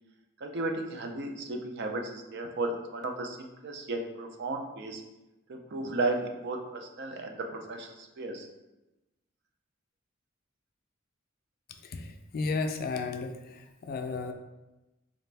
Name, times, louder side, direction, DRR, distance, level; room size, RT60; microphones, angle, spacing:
voice 1, 0.4-5.0 5.5-8.5, right 2 dB, 55° right, 3 dB, 0.5 m, -34 dB
voice 2, 11.8-14.3, left 4 dB, 45° left, 6 dB, 0.4 m, -34 dB
4.1 x 2.5 x 3.3 m, 1.0 s
head